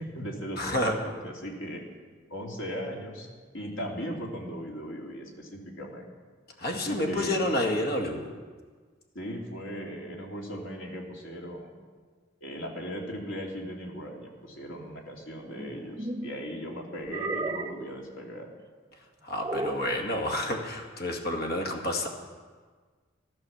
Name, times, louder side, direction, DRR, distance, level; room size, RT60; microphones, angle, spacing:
voice 1, 0.0-1.8 2.3-3.3 3.5-6.1 6.7-7.5 9.1-11.8 12.4-18.5 19.5-19.7, equal, 75° left, -1 dB, 3.1 m, -38 dB
voice 2, 0.6-1.0 6.6-8.3 19.2-22.1, left 1 dB, 55° left, 2 dB, 2.1 m, -29 dB
sound 1, 15.5-16.4 17.1-17.9 19.4-19.9, right 2 dB, 20° right, 0.6 m, -33 dB
14.0 x 13.0 x 7.2 m, 1.5 s
head